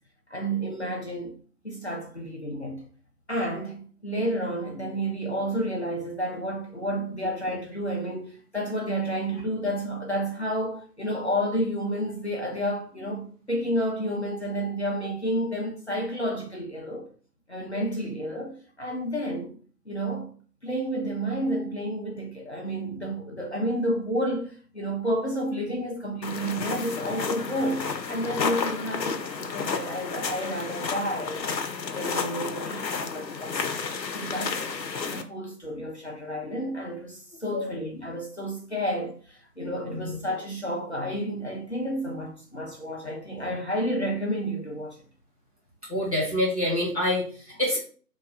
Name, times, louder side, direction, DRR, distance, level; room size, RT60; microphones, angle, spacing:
voice 1, 0.3-1.3 1.6-2.8 3.3-17.1 17.5-19.5 19.9-20.3 20.6-31.4 31.9-33.7 34.1-34.6 35.1-45.0, equal, 40° left, 0.8 m, -30 dB
sound 1, 26.2-35.2, left 5 dB, 90° left, 0.7 m, -31 dB
voice 2, 39.8-40.2 45.9-47.8, left 1 dB, 20° right, 1.0 m, -27 dB
3.5 x 2.7 x 3.2 m
figure-of-eight pair, 160°, 50 cm